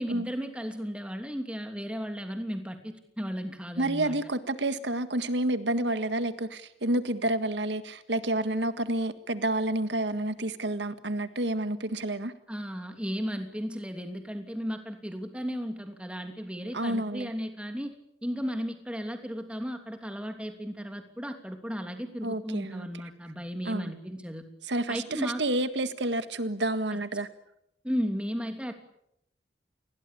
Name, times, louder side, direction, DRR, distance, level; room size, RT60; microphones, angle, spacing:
voice 1, 0.0-4.2 12.5-17.9 18.2-24.4 24.9-25.4 26.9-27.0 27.8-28.7, equal, 5° right, 6 dB, 3.0 m, -35 dB
voice 2, 3.8-12.3 16.7-17.3 22.2-22.9 23.7-23.9 24.6-27.3, right 1 dB, 80° right, 11 dB, 1.8 m, -29 dB
29.0 x 21.5 x 8.6 m, 0.76 s
head